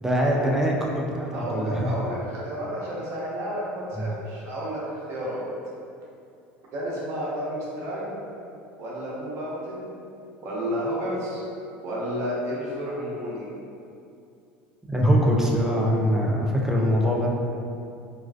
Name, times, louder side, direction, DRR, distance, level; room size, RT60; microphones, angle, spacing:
voice 1, 0.0-1.9 4.0-4.1 14.9-17.3, equal, 10° right, -2 dB, 0.4 m, -23 dB
voice 2, 1.3-5.4 6.7-8.1 8.8-9.9 10.4-11.4 11.8-13.5, equal, 60° right, -6 dB, 0.8 m, -31 dB
2.4 x 2.2 x 2.3 m, 2.5 s
supercardioid pair, 85°, 6 cm